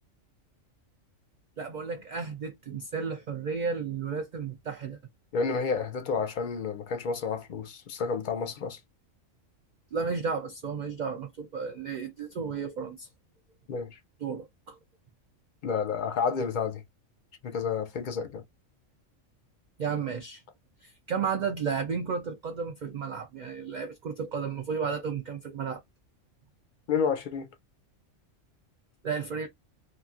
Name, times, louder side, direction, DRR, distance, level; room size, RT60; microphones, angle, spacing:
voice 1, 1.6-5.0 9.9-13.1 14.2-14.8 19.8-20.4 20.8-25.8 29.0-29.5, right 5 dB, 70° right, 0.4 m, -33 dB
voice 2, 5.3-8.8 13.7-14.0 15.6-16.8 17.4-18.4 26.9-27.5, left 5 dB, 60° left, 0.5 m, -30 dB
3.0 x 2.4 x 2.4 m
omnidirectional pair, 1.3 m